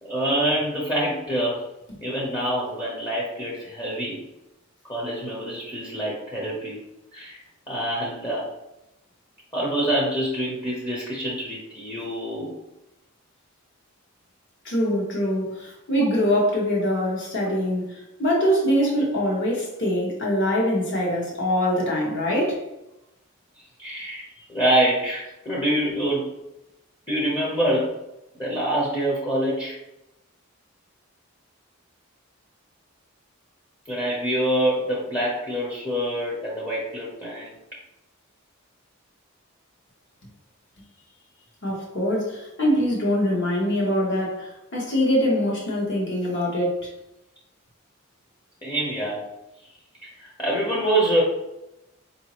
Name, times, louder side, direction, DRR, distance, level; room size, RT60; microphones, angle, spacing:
voice 1, 0.0-1.6 2.0-4.2 4.9-6.8 7.1-7.4 7.7-8.5 9.5-12.5 23.8-26.3 27.1-27.9 28.4-29.8 33.9-37.5 48.6-49.2 50.0-51.2, right 1 dB, 20° left, -5 dB, 0.8 m, -25 dB
voice 2, 14.6-22.6 41.6-46.9, equal, 55° left, -2 dB, 1.1 m, -23 dB
4.7 x 2.7 x 2.9 m, 0.91 s
head